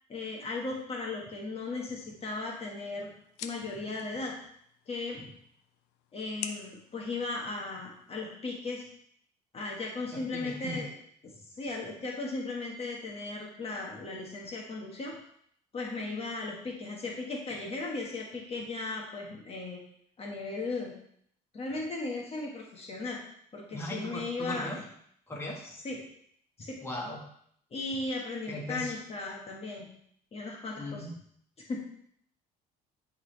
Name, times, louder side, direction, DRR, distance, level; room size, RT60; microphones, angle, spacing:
voice 1, 0.1-3.1 3.4-4.4 4.9-5.3 6.1-8.8 9.5-10.9 11.2-15.1 15.7-19.8 20.2-20.9 21.5-23.2 23.5-24.8 25.6-26.0 26.6-26.8 27.7-29.8 30.3-31.1 31.7-31.8, left 3 dB, 35° left, -1 dB, 1.6 m, -36 dB
sound 1, 2.1-8.1, left 9 dB, 90° left, 0.6 m, -48 dB
voice 2, 10.3-10.8 23.7-24.8 25.3-25.7 26.8-27.2 28.5-28.9 30.8-31.1, left 1 dB, 15° left, -2 dB, 1.6 m, -38 dB
10.5 x 3.9 x 3.3 m, 0.68 s
cardioid pair, 110°, 17 cm